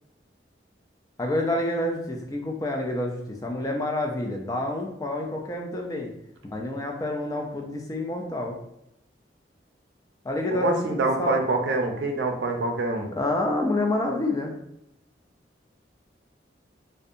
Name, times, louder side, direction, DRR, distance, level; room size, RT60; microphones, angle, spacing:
voice 1, 1.2-6.1 6.4-8.6 10.2-11.4 13.2-14.5, left 1 dB, 20° left, 1 dB, 0.3 m, -28 dB
voice 2, 10.5-13.1, right 3 dB, 75° right, 3 dB, 0.4 m, -25 dB
2.6 x 2.1 x 2.5 m, 0.83 s
head